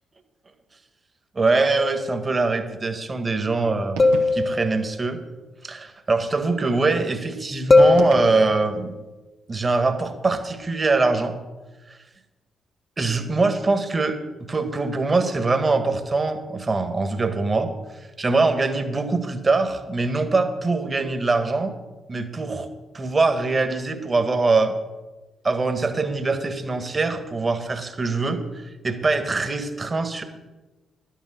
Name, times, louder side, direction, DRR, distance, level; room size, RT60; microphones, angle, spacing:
voice 1, 1.3-4.0 4.3-5.2 5.6-9.0 9.5-11.3 11.9-12.0 13.0-17.7 18.2-21.7 22.1-22.7 22.9-24.7 25.4-30.2, right 3 dB, 35° right, 8 dB, 1.6 m, -23 dB
sound 1, 1.7-2.4 4.0-5.1 7.7-9.0, left 3 dB, 35° left, 1.2 m, -20 dB
sound 2, 3.9-4.7 7.7-8.8, right 5 dB, 80° right, 1.1 m, -35 dB
12.0 x 8.4 x 6.3 m, 1.2 s
hypercardioid pair, 40°, 0 cm